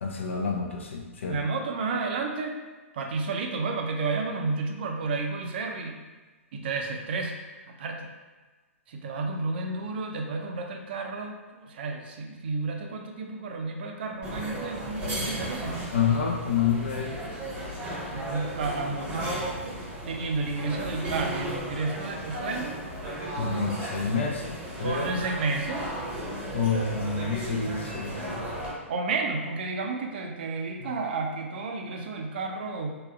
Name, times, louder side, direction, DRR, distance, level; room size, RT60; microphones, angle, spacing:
voice 1, 0.0-1.4 15.9-17.1 23.4-24.5 24.8-25.1 26.5-28.5, left 6 dB, 60° left, 2 dB, 0.5 m, -28 dB
voice 2, 1.3-2.6 2.9-6.0 6.5-7.4 7.7-8.1 8.9-15.8 18.1-19.4 20.1-22.7 24.8-25.9 28.9-32.9, right 3 dB, 45° right, 2 dB, 0.4 m, -31 dB
sound 1, 14.2-28.7, right 1 dB, 15° right, 0.8 m, -35 dB
3.5 x 2.4 x 2.3 m, 1.3 s
figure-of-eight pair, 110°, 7 cm